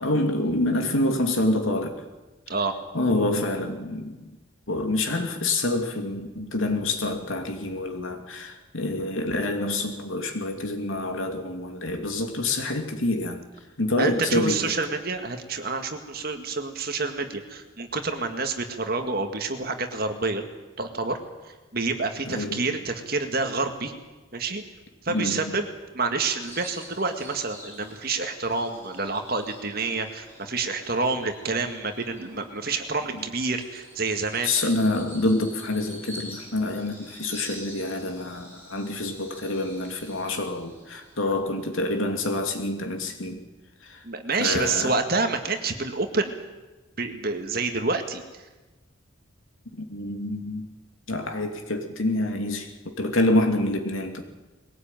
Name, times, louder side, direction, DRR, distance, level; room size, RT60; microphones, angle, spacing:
voice 1, 0.0-2.0 2.9-4.3 4.7-13.4 13.8-14.7 22.3-22.7 25.1-25.6 34.4-43.4 43.8-44.0 44.4-44.9 49.9-50.7 51.1-54.2, left 2 dB, 70° left, 5 dB, 2.6 m, -27 dB
voice 2, 14.0-20.4 20.8-21.2 21.7-23.9 24.3-24.6 25.0-25.7 25.9-34.7 44.1-46.4 47.0-48.2, right 3 dB, 45° right, 6 dB, 2.0 m, -28 dB
Bird vocalization bird call bird song, 26.4-42.4, equal, 10° left, 6.9 m, -47 dB
21.5 x 17.5 x 9.1 m, 1.2 s
head